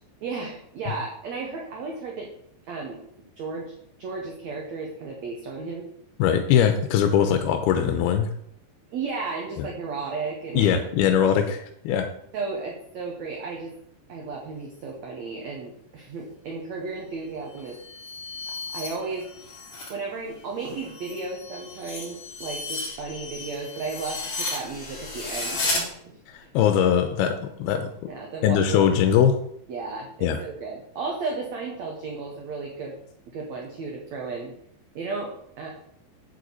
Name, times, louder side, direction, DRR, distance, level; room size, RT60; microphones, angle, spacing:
voice 1, 0.2-2.3 2.7-3.0 3.4-5.9 8.9-11.2 12.3-13.7 14.1-17.8 18.5-19.3 19.9-26.2 28.1-28.9 29.7-33.0 33.3-34.5 35.0-35.7, right 4 dB, 65° right, -1 dB, 1.9 m, -34 dB
voice 2, 6.2-8.3 10.5-12.1 26.3-28.1 28.4-29.3 30.2-30.4, left 9 dB, 80° left, 6 dB, 2.5 m, -21 dB
sound 1, 17.6-20.0 20.3-25.8, left 3 dB, 40° left, 3.0 m, -34 dB
8.6 x 7.9 x 4.1 m, 0.71 s
omnidirectional pair, 4.7 m